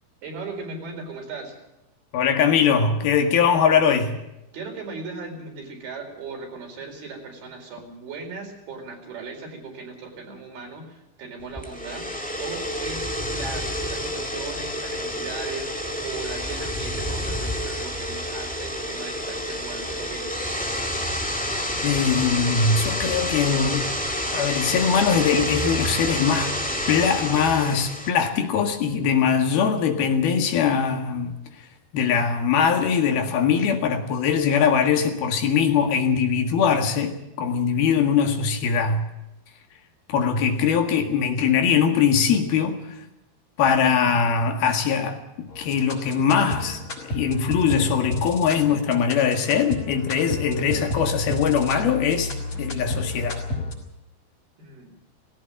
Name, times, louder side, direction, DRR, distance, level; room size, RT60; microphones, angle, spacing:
voice 1, 0.2-1.6 4.5-20.4 54.6-54.9, right 4 dB, 75° right, 6.2 m, -38 dB
voice 2, 2.1-4.2 21.8-23.9 24.3-26.5 26.9-31.4 31.9-39.1 40.1-42.8 43.6-52.3 52.6-53.4, left 6 dB, 75° left, 3.7 m, -21 dB
sound 1, 11.5-28.1, equal, 15° left, 0.3 m, -29 dB
sound 2, 45.5-53.7, left 2 dB, 40° left, 5.4 m, -32 dB
18.5 x 17.0 x 8.8 m
omnidirectional pair, 4.4 m